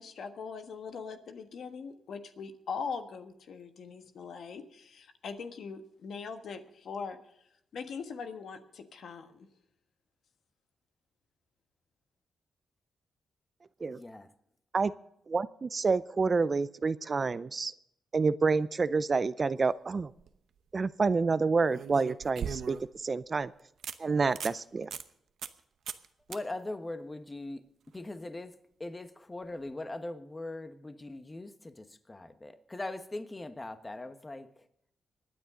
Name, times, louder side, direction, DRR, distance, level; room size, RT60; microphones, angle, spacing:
voice 1, 0.0-7.2 7.7-9.5, left 5 dB, 70° left, 7 dB, 1.4 m, -41 dB
voice 2, 13.9-14.3 26.3-27.6 27.9-34.7, left 2 dB, 20° left, 9 dB, 1.3 m, -41 dB
voice 3, 15.3-17.7 18.1-20.1 20.7-23.5 24.0-24.9, right 4 dB, 40° right, 16 dB, 0.5 m, -28 dB
sound 1, 19.9-20.3 21.7-23.0 23.4-23.5 23.8-24.0 24.3-24.6 24.9-25.0 25.4-25.6 25.9-26.1 26.3-26.4 29.5-29.6, right 7 dB, 75° right, 0.8 m, -39 dB
25.0 x 9.7 x 3.8 m, 0.75 s
cardioid pair, 85°, 0 cm